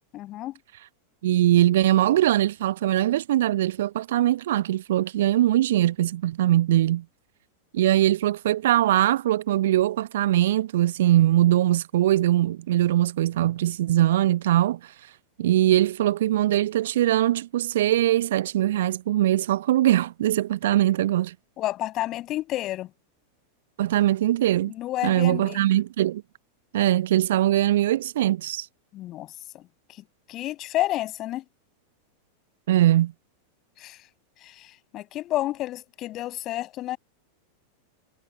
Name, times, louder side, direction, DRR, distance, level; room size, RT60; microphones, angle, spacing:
voice 1, 0.1-0.5 21.6-22.9 24.7-25.6 28.9-29.6 30.3-31.4 33.8-34.0 34.4-37.0, left 15 dB, 35° left, 6.6 m, -30 dB
voice 2, 1.2-7.0 7.7-14.9 15.4-21.3 23.8-24.7 25.0-26.2 26.7-28.7 32.7-33.1, right 13 dB, 55° right, 0.9 m, -21 dB
figure-of-eight pair, 90°, 0 cm